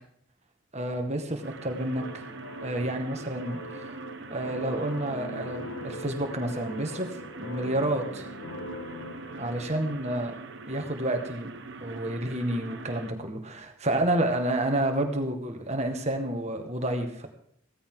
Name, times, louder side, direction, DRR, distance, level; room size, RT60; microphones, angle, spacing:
voice 1, 0.7-2.2 2.6-3.9 4.3-8.3 9.4-10.4 10.7-11.5 11.8-17.3, right 1 dB, 30° right, 4 dB, 1.8 m, -30 dB
sound 1, 1.4-13.1, right 4 dB, 55° right, 1.2 m, -43 dB
sound 2, 1.9-11.0, left 1 dB, 75° left, 1.1 m, -42 dB
16.0 x 14.0 x 3.9 m, 0.70 s
head